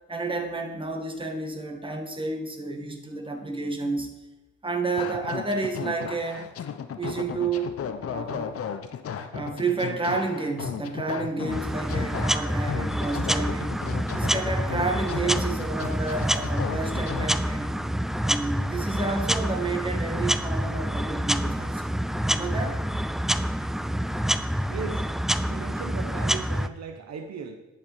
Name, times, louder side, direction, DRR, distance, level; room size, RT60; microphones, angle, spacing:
voice 1, 0.1-4.1 4.6-6.5 7.0-7.7 8.0-8.6 9.3-13.8 14.1-17.8 18.2-21.9 22.3-22.8, right 3 dB, 15° right, 3 dB, 1.7 m, -30 dB
sound 1, 5.0-17.3, left 7 dB, 50° left, 0.8 m, -35 dB
sound 2, 11.5-26.7, equal, ahead, 0.3 m, -27 dB
voice 2, 24.7-25.0 25.5-27.6, right 6 dB, 60° right, 5 dB, 1.0 m, -37 dB
10.5 x 5.2 x 6.1 m, 1.0 s
cardioid pair, 90°, 30 cm